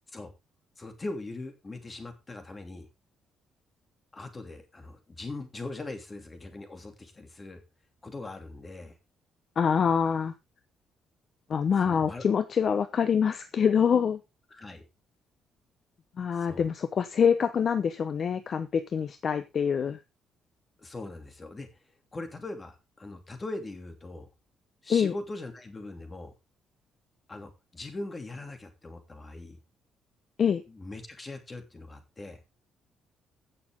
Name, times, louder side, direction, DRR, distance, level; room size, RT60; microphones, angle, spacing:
voice 1, 0.8-2.9 4.1-7.6 8.0-8.9 11.8-12.2 14.5-14.8 16.3-16.7 20.8-21.7 22.1-24.3 24.8-26.3 27.3-29.6 30.7-32.4, left 2 dB, 20° left, 2.9 m, -41 dB
voice 2, 9.6-10.3 11.5-14.2 16.2-20.0 24.9-25.1 30.4-30.6, left 7 dB, 40° left, 0.8 m, -25 dB
16.5 x 6.8 x 3.7 m
cardioid pair, 140°, 0 cm